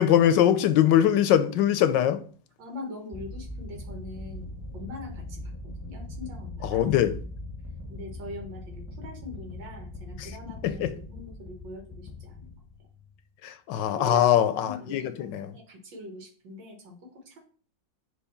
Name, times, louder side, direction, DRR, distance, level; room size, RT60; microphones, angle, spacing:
voice 1, 0.0-2.2 6.7-7.1 10.2-10.3 10.6-10.9 13.4-15.5, left 10 dB, 80° left, 1.3 m, -22 dB
voice 2, 2.6-6.9 7.9-12.6 13.7-17.0 17.3-17.4, left 1 dB, 85° right, 2.3 m, -42 dB
sound 1, 3.1-13.2, left 2 dB, 10° right, 1.3 m, -41 dB
6.3 x 3.0 x 5.7 m
omnidirectional pair, 2.0 m